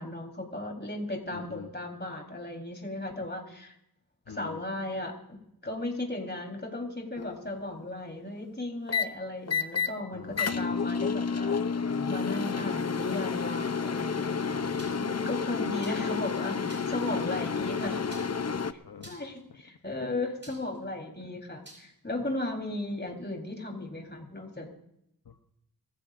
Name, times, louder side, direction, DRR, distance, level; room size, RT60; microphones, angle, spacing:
voice 1, 0.0-3.7 4.3-5.1 5.6-11.6 12.1-18.4 19.0-24.7, left 2 dB, 30° left, 1 dB, 4.1 m, -36 dB
voice 2, 1.3-1.7 4.3-4.6 10.1-11.0 14.6-15.1 17.1-19.2 21.2-21.3 25.2-25.4, left 6 dB, 75° left, 5 dB, 1.0 m, -46 dB
sound 1, 7.2-7.5 8.9-9.0 9.5-9.9 10.4-18.7, left 5 dB, 45° left, 0.7 m, -30 dB
sound 2, 14.8-15.1 15.8-16.2 16.7-17.0 18.1-18.6 19.0-19.4 20.4-20.8 21.6-21.8, right 1 dB, 30° right, 6.8 m, -49 dB
25.0 x 15.0 x 2.6 m, 0.77 s
wide cardioid pair, 45°, 37 cm